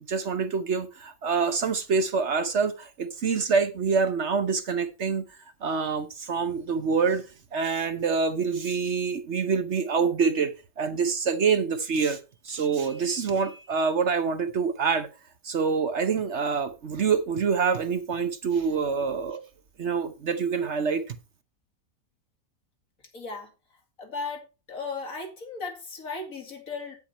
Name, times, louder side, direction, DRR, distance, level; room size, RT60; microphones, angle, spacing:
voice 1, 0.1-5.2 5.6-7.2 7.5-12.2 12.4-15.1 15.4-19.4 19.8-21.1, right 5 dB, 55° right, 1.1 m, -26 dB
voice 2, 23.1-23.5 24.0-24.4 24.7-27.0, left 4 dB, 65° left, 2.7 m, -36 dB
8.8 x 8.2 x 4.2 m
omnidirectional pair, 1.6 m